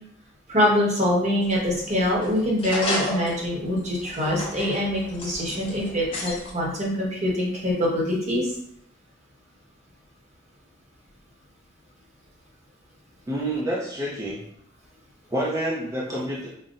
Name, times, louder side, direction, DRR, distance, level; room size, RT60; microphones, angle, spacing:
voice 1, 0.5-8.5, left 1 dB, 35° right, -3 dB, 1.0 m, -24 dB
sound 1, 1.4-6.5, left 1 dB, 30° left, 0.8 m, -33 dB
voice 2, 13.3-14.4 15.3-16.5, right 1 dB, 15° right, -5 dB, 0.5 m, -28 dB
5.5 x 2.1 x 2.5 m, 0.71 s
head